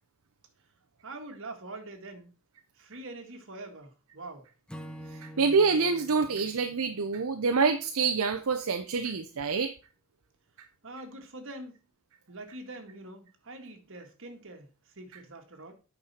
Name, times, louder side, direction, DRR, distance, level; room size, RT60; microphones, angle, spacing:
voice 1, 1.0-2.3 2.8-4.5 10.8-11.8 12.3-15.7, right 2 dB, 60° right, 1.8 m, -44 dB
Acoustic guitar / Strum, 4.7-8.0, equal, 5° left, 0.8 m, -47 dB
voice 2, 5.1-9.7, right 4 dB, 75° right, 0.7 m, -26 dB
8.8 x 5.4 x 4.3 m
head